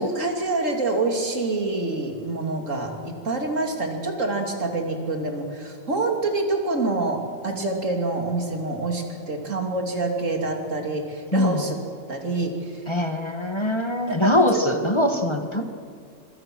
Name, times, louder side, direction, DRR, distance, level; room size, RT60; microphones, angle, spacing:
voice 1, 0.0-11.8 12.1-12.8 14.2-14.6, right 2 dB, 80° right, 3 dB, 3.1 m, -26 dB
voice 2, 11.3-11.7 12.9-15.6, left 1 dB, 25° left, 5 dB, 1.4 m, -22 dB
25.5 x 24.0 x 6.2 m, 2.2 s
omnidirectional pair, 1.3 m